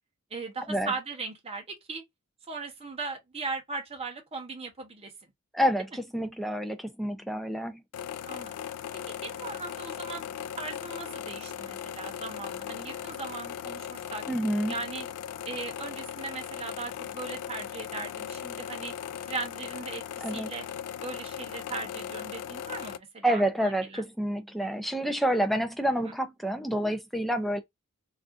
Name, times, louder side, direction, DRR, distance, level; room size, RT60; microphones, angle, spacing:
voice 1, 0.3-2.0 2.5-5.1 8.3-8.5 9.1-10.2 10.6-14.2 14.7-15.1 15.5-18.9 19.3-20.6 21.0-24.1, right 4 dB, 30° right, 0.9 m, -38 dB
voice 2, 5.5-7.8 14.3-14.7 20.2-20.5 23.2-27.6, equal, ahead, 0.4 m, -28 dB
sound 1, 7.9-23.0, left 9 dB, 85° left, 0.3 m, -38 dB
3.6 x 2.4 x 2.4 m
head